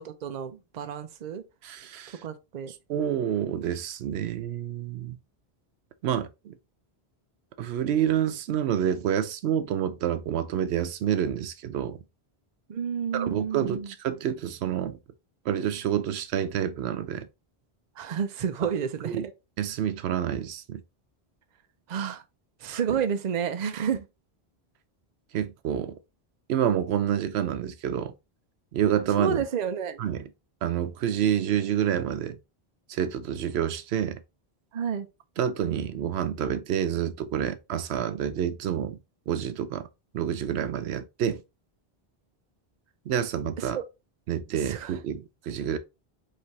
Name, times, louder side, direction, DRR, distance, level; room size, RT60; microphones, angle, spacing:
voice 1, 0.0-1.4 2.2-2.7 12.7-13.9 18.0-19.3 21.9-22.2 22.6-24.1 29.2-30.1 34.7-35.1 43.6-43.8 44.6-45.0, right 7 dB, 50° right, 0.6 m, -30 dB
voice 2, 1.6-2.2 2.7-5.2 6.0-6.5 7.6-12.0 13.1-15.0 15.5-17.3 19.0-19.2 19.6-20.8 25.3-26.0 26.5-28.1 28.7-29.4 30.0-30.3 30.6-32.4 32.9-34.2 35.4-39.0 39.3-39.9 40.1-41.4 43.1-43.8 44.3-45.8, right 9 dB, 85° right, 0.8 m, -28 dB
4.9 x 3.3 x 2.7 m
omnidirectional pair, 1.1 m